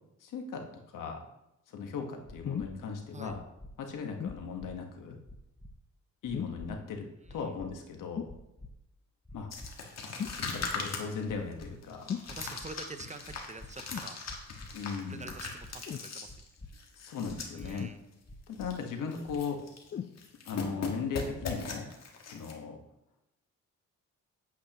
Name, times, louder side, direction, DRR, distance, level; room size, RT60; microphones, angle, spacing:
voice 1, 0.2-1.2 1.7-3.4 3.8-5.2 6.2-7.0 7.3-8.3 9.3-9.5 10.4-12.1 14.7-15.3 17.0-17.8 18.5-19.6 20.4-21.9 22.2-22.8, left 5 dB, 80° left, 3 dB, 1.5 m, -37 dB
sound 1, 2.2-2.7 3.2-3.7 4.2-4.7 5.2-5.7 6.2-6.7 7.2-7.7 8.2-8.7 9.2-9.7 10.2-10.7 11.2-11.7 12.2-12.7 13.2-13.7 14.2-14.7 15.2-15.7 16.2-16.7 17.2-17.7 18.2-18.7 19.2-19.6, left 2 dB, 10° left, 0.8 m, -48 dB
sound 2, 2.4-2.8 4.2-4.4 6.3-6.7 8.2-8.4 10.2-10.4 12.1-12.3 13.9-14.2 15.9-16.1 17.8-18.4 19.9-20.2 21.0-21.1, left 8 dB, 35° left, 0.5 m, -37 dB
sound 3, 9.5-17.8 18.1-18.2 18.5-18.8 19.1-19.9 20.2-22.5, left 4 dB, 55° left, 1.7 m, -40 dB
voice 2, 12.3-14.2 15.1-16.4 17.6-18.0, right 3 dB, 20° right, 9 dB, 0.6 m, -46 dB
8.6 x 8.2 x 3.0 m, 0.87 s
cardioid pair, 95°, 31 cm